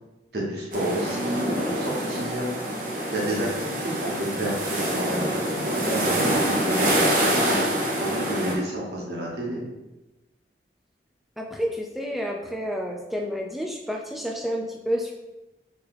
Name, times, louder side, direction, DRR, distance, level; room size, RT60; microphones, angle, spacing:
voice 1, 0.3-2.5 3.1-5.3 5.7-9.6, right 1 dB, 70° right, -3 dB, 1.2 m, -30 dB
sound 1, 0.7-8.5, right 1 dB, 45° right, 0.9 m, -26 dB
voice 2, 11.4-15.1, equal, ahead, 1 dB, 0.4 m, -30 dB
5.3 x 3.3 x 3.1 m, 1.0 s
head